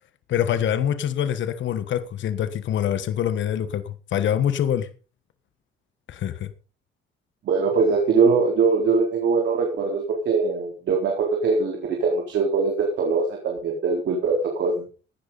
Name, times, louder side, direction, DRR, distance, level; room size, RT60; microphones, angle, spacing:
voice 1, 0.3-4.9 6.1-6.5, left 9 dB, 70° left, 1.4 m, -25 dB
voice 2, 7.5-14.7, right 4 dB, 70° right, 4.2 m, -22 dB
17.0 x 10.5 x 4.1 m
cardioid pair, 90°, 20 cm